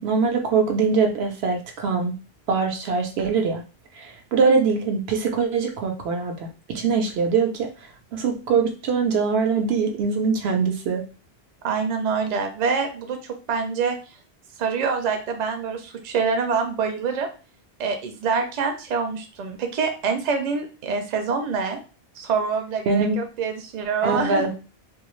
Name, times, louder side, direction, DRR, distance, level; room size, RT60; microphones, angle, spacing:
voice 1, 0.0-2.1 2.5-3.6 4.0-7.7 8.1-11.0 22.9-23.2 24.0-24.5, right 5 dB, 80° right, 4 dB, 0.9 m, -22 dB
voice 2, 11.6-14.0 14.6-17.3 17.8-21.8 22.2-24.5, right 5 dB, 50° right, 5 dB, 0.6 m, -25 dB
2.4 x 2.2 x 3.0 m, 0.34 s
omnidirectional pair, 1.1 m